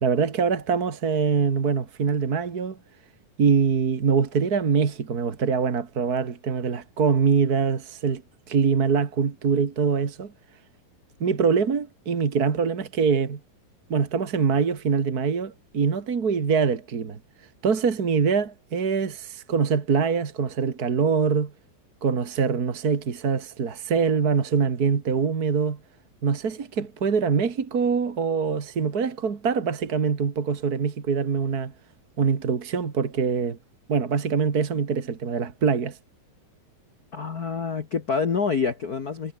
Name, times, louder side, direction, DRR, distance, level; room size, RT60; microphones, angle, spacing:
voice 1, 0.0-2.8 3.4-8.2 8.5-10.3 11.2-13.4 13.9-17.2 17.6-21.5 22.0-25.8 26.2-31.7 32.2-33.6 33.9-36.0, right 5 dB, 35° right, 1.6 m, -24 dB
voice 2, 37.1-39.3, left 5 dB, 85° left, 0.8 m, -27 dB
omnidirectional pair, 4.2 m